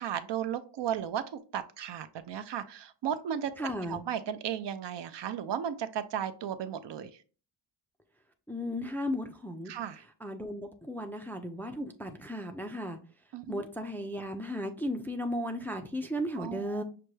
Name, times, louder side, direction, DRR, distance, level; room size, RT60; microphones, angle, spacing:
voice 1, 0.0-3.5 3.9-7.2 9.7-10.0 13.3-13.6 16.4-16.8, right 9 dB, 65° right, 0.5 m, -35 dB
voice 2, 3.6-4.0 8.5-9.7 10.2-13.0 13.5-16.8, equal, 5° left, 0.3 m, -35 dB
5.8 x 2.2 x 3.1 m
cardioid pair, 85°, 47 cm